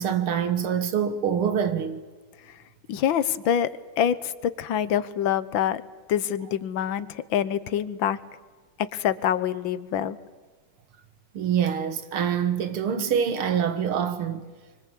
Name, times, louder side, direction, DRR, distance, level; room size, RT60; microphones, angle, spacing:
voice 1, 0.0-2.0 11.3-14.4, right 8 dB, 90° right, 2.4 m, -25 dB
voice 2, 2.9-3.7 4.0-4.3 4.6-5.8 6.1-8.2 8.8-10.2, left 9 dB, 70° left, 1.6 m, -25 dB
24.5 x 24.0 x 8.4 m
omnidirectional pair, 2.3 m